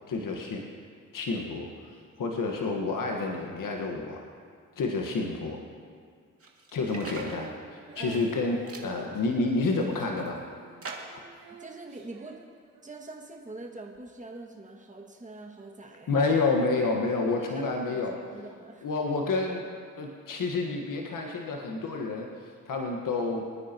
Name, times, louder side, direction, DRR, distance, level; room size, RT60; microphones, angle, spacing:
voice 1, 0.1-0.7 1.1-1.7 2.2-4.2 4.8-5.6 6.7-8.6 8.8-10.4 16.1-18.2 18.8-19.7 20.0-23.4, left 3 dB, 60° left, 1 dB, 1.5 m, -29 dB
sound 1, 6.4-7.5 8.0-8.4 8.7-8.9 9.5-10.3 10.8-11.3, right 3 dB, 40° right, 2.3 m, -42 dB
Female singing, 6.9-13.2 13.9-14.0, right 5 dB, 90° right, 1.7 m, -51 dB
voice 2, 11.5-12.4 12.8-16.2 17.4-18.9, right 2 dB, 20° right, -1 dB, 2.0 m, -44 dB
25.0 x 9.8 x 3.0 m, 2.1 s
hypercardioid pair, 45°, 35 cm